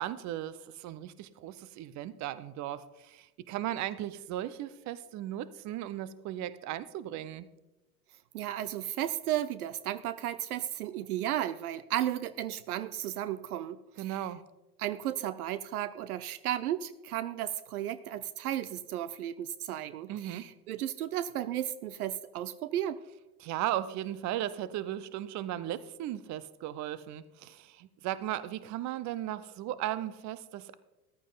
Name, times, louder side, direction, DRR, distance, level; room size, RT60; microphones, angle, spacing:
voice 1, 0.0-7.5 14.0-14.4 20.1-20.4 23.4-30.7, right 12 dB, 35° right, 16 dB, 0.8 m, -36 dB
voice 2, 8.3-14.2 14.8-23.0, right 12 dB, 70° right, 15 dB, 0.6 m, -34 dB
14.0 x 11.0 x 4.0 m, 1.0 s
figure-of-eight pair, 80°, 46 cm